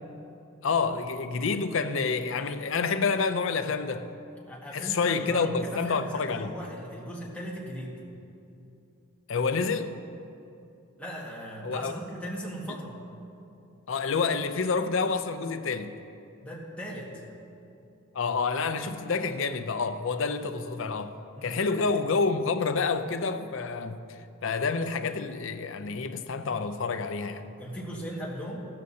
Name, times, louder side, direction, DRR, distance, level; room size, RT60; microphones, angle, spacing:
voice 1, 0.6-4.1 4.7-6.5 9.3-10.0 11.6-11.9 13.9-16.0 18.1-21.1 21.4-27.5, left 4 dB, 60° left, 0.5 m, -28 dB
voice 2, 4.5-8.0 11.0-13.0 16.4-17.2 21.3-21.6 27.6-28.7, equal, 5° left, 1.7 m, -38 dB
15.5 x 13.0 x 2.8 m
head